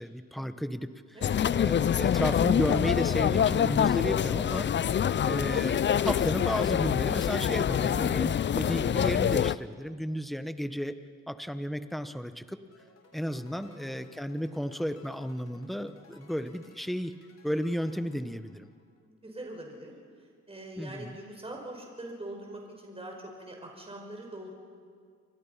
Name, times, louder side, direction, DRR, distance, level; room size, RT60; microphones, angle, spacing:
voice 1, 0.0-1.2 1.5-4.7 5.2-11.0 11.3-12.6 13.1-17.1 17.4-18.7 20.8-21.2, equal, ahead, 10 dB, 1.2 m, -33 dB
sound 1, 1.2-9.5, left 9 dB, 40° left, 0.5 m, -26 dB
sound 2, 12.7-19.0, left 3 dB, 55° left, 3.9 m, -60 dB
voice 2, 13.6-14.0 19.0-24.5, right 1 dB, 20° right, 1 dB, 5.6 m, -43 dB
29.5 x 23.5 x 5.8 m, 2.1 s
cardioid pair, 90°, 30 cm